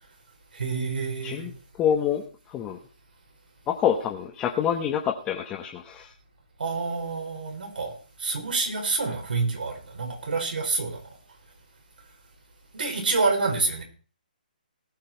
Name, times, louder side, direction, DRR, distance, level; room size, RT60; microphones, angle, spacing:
voice 1, 0.5-1.5 6.6-7.9 8.2-11.0 12.7-13.8, right 4 dB, 75° right, 2 dB, 5.3 m, -27 dB
voice 2, 1.8-2.2 2.5-2.8 3.7-6.1, left 9 dB, 15° left, 1 dB, 1.0 m, -26 dB
19.0 x 6.7 x 4.5 m, 0.38 s
hypercardioid pair, 160°, 5 cm